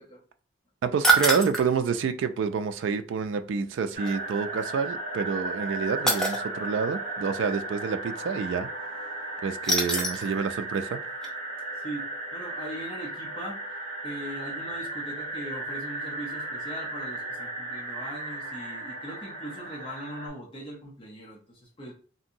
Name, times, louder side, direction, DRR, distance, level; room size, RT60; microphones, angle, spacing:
voice 1, 0.8-8.7 9.4-11.0, right 6 dB, 85° right, 0.3 m, -28 dB
sound 1, 1.0-1.7 4.0-4.1 6.1-6.4 9.6-10.3 10.7-10.8 11.2-11.3, right 2 dB, 5° left, 0.5 m, -24 dB
sound 2, 3.9-20.3, right 2 dB, 45° right, 1.5 m, -35 dB
voice 2, 11.8-13.6 14.0-21.9, right 1 dB, 30° left, 0.8 m, -40 dB
3.0 x 2.7 x 2.6 m
head